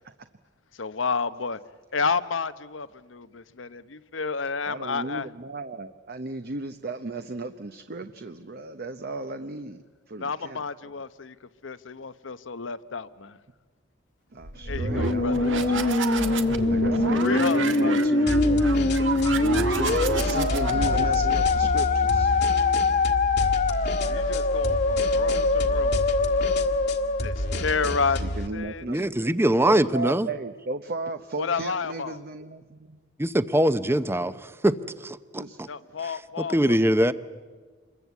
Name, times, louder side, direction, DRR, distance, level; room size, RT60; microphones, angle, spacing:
voice 1, 0.7-1.6 1.9-5.3 10.2-13.4 14.7-15.5 17.2-18.1 24.1-26.1 27.2-28.8 31.3-32.2 35.6-37.1, left 5 dB, 85° left, 14 dB, 0.9 m, -31 dB
voice 2, 4.7-10.6 14.3-16.0 16.6-18.7 19.3-22.4 28.2-29.3 29.6-33.0 35.4-35.6, right 2 dB, 55° right, 8 dB, 0.8 m, -35 dB
sound 1, 14.4-22.1, right 3 dB, 80° right, 1.5 m, -31 dB
Musical instrument, 14.7-28.1, left 3 dB, 45° left, 1.2 m, -24 dB
sound 2, 18.3-28.5, left 1 dB, 60° left, 1.6 m, -30 dB
voice 3, 28.9-30.3 33.2-34.8 35.0-35.7 36.4-37.1, right 1 dB, 15° right, 13 dB, 0.7 m, -23 dB
26.5 x 22.0 x 8.3 m, 1.5 s
head